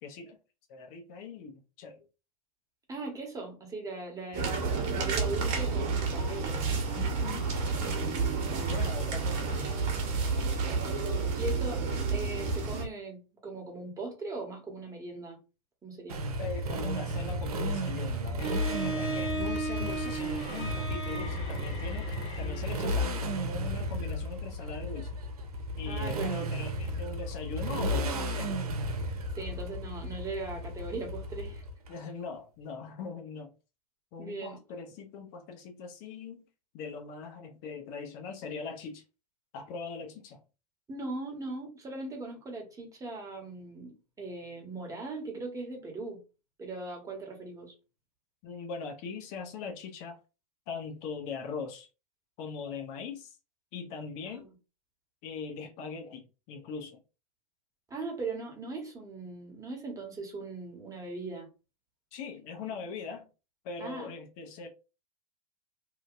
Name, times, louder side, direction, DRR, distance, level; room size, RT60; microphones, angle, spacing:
voice 1, 0.0-0.4 0.7-2.1 6.9-8.2 8.7-11.3 16.4-22.1 22.4-25.1 25.8-28.5 31.9-33.5 34.1-36.4 36.7-39.0 39.5-40.4 48.4-50.2 50.7-51.9 52.4-53.4 53.7-54.5 55.2-57.0 62.1-63.3 63.6-64.7, left 5 dB, 45° left, 0.7 m, -41 dB
voice 2, 2.9-6.6 11.3-11.8 12.1-15.4 15.8-16.2 25.8-26.5 29.4-31.6 34.2-34.6 40.9-46.2 46.6-47.7 54.3-54.5 57.9-61.5 63.8-64.1, right 3 dB, 15° right, 1.2 m, -39 dB
sound 1, 4.3-12.9, right 4 dB, 40° right, 1.2 m, -30 dB
Motorcycle, 16.1-31.9, equal, 75° right, 0.7 m, -33 dB
Bowed string instrument, 18.4-23.3, right 2 dB, 20° left, 1.2 m, -37 dB
2.9 x 2.6 x 2.5 m
hypercardioid pair, 95°, 19 cm